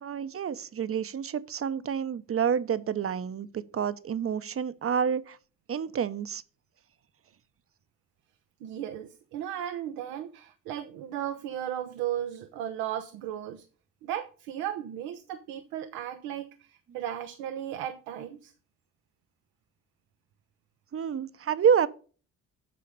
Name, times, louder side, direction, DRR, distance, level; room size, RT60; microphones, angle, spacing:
voice 1, 0.0-5.4 5.7-6.4 20.9-21.9, right 7 dB, 40° right, 0.9 m, -28 dB
voice 2, 8.6-13.7 14.0-18.5, right 11 dB, 85° right, 0.9 m, -35 dB
8.7 x 5.7 x 6.6 m
supercardioid pair, 65°, 35 cm